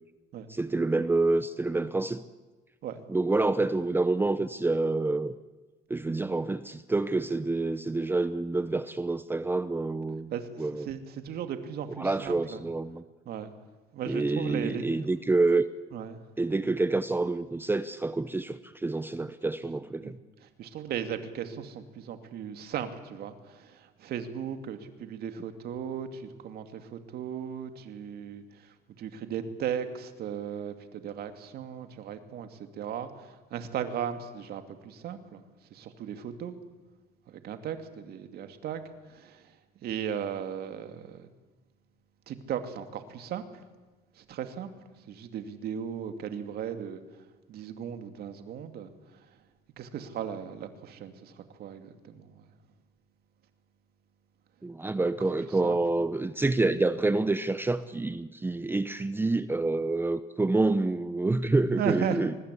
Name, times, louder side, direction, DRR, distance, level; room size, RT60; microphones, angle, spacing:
voice 1, 0.5-2.2 3.1-5.3 5.9-10.3 10.6-10.9 12.0-13.0 14.1-15.6 16.4-20.2 54.6-62.4, right 2 dB, 15° right, 13 dB, 0.8 m, -27 dB
voice 2, 10.3-12.7 13.3-13.5 13.9-15.1 15.9-16.2 20.0-20.1 20.4-35.4 35.7-36.5 37.3-39.6 39.8-41.3 42.3-43.6 44.2-44.7 45.1-47.0 47.5-49.3 49.8-52.5 55.2-55.8 61.8-62.4, right 8 dB, 65° right, 7 dB, 2.5 m, -37 dB
23.5 x 20.5 x 8.4 m, 1.2 s
cardioid pair, 110°, 17 cm